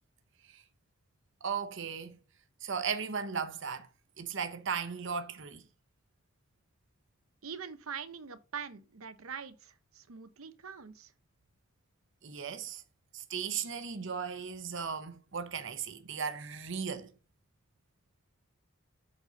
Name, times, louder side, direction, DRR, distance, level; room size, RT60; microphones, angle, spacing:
voice 1, 1.4-2.2 2.6-3.9 4.2-5.6 12.2-12.8 13.1-17.1, right 6 dB, 60° right, 0.9 m, -36 dB
voice 2, 7.4-11.1, right 6 dB, 90° right, 0.8 m, -43 dB
7.7 x 4.1 x 5.2 m
head